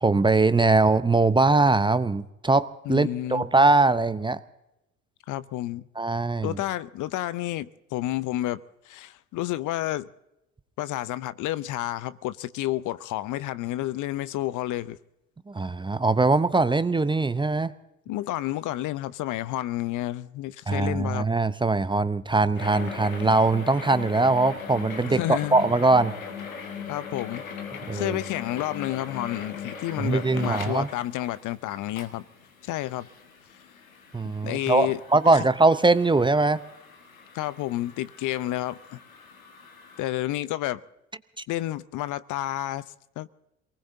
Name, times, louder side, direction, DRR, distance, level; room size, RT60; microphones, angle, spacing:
voice 1, 0.0-4.4 6.0-6.6 15.5-17.7 20.7-26.1 27.9-28.2 30.0-30.9 34.1-36.6, right 3 dB, 10° right, 0.7 m, -22 dB
voice 2, 2.9-3.5 5.3-5.9 6.4-10.1 10.8-15.0 18.1-21.3 25.0-25.6 26.9-27.4 27.9-32.2 32.6-33.1 34.4-35.0 35.3-35.4 37.3-39.0 40.0-40.8 41.5-42.8 43.2-43.3, left 15 dB, 50° left, 0.7 m, -30 dB
sound 1, 22.6-40.0, left 6 dB, 85° left, 1.6 m, -40 dB
27.5 x 19.5 x 2.7 m
figure-of-eight pair, 60°, 40 cm